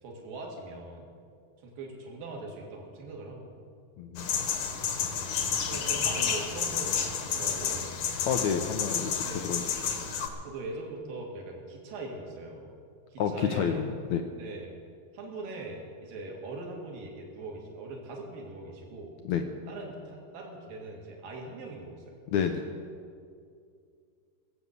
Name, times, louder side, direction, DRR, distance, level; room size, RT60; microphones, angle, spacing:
voice 1, 0.0-1.1 1.6-3.7 5.7-7.0 7.3-8.1 9.2-9.5 10.4-12.7 13.1-13.8 14.4-14.7 15.1-19.1 19.7-22.2, right 2 dB, 70° right, 0 dB, 3.7 m, -41 dB
voice 2, 4.0-4.3 8.3-9.9 13.2-14.2 19.2-19.4 22.3-22.6, left 7 dB, 85° left, 5 dB, 1.6 m, -29 dB
sound 1, 4.2-10.3, left 7 dB, 65° left, 2.3 m, -30 dB
20.0 x 7.3 x 8.2 m, 2.3 s
omnidirectional pair, 4.2 m